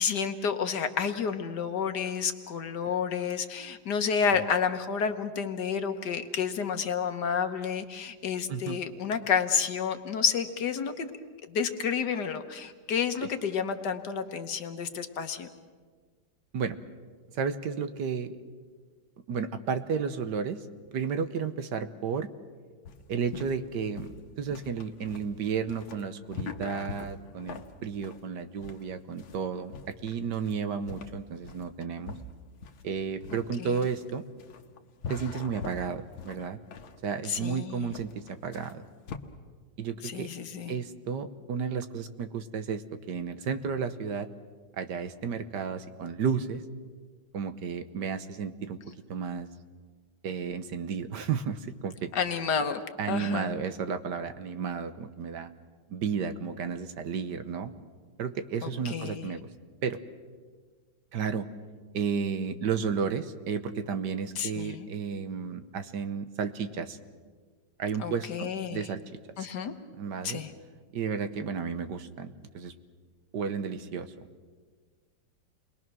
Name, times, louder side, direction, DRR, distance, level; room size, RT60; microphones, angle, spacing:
voice 1, 0.0-11.1 11.5-15.5 33.6-33.8 37.2-37.9 40.0-40.8 52.1-52.8 53.1-53.5 58.6-59.3 64.4-64.9 68.0-68.8 69.4-69.7 70.2-70.5, left 6 dB, 60° left, 7 dB, 1.6 m, -30 dB
voice 2, 17.3-18.3 19.3-20.6 20.9-22.3 23.1-24.1 24.4-32.1 32.8-34.2 35.1-36.6 37.0-38.8 39.8-40.3 40.7-44.3 44.7-46.6 47.3-49.5 50.2-52.1 53.0-55.5 55.9-57.7 58.2-59.5 59.8-60.0 61.1-61.5 61.9-67.0 67.8-69.0 69.4-69.5 70.0-70.4 70.9-72.7 73.3-74.1, right 6 dB, 65° right, 9 dB, 1.5 m, -32 dB
sound 1, 22.8-39.2, left 5 dB, 85° left, 1.9 m, -43 dB
29.0 x 21.5 x 6.2 m, 1.6 s
omnidirectional pair, 2.1 m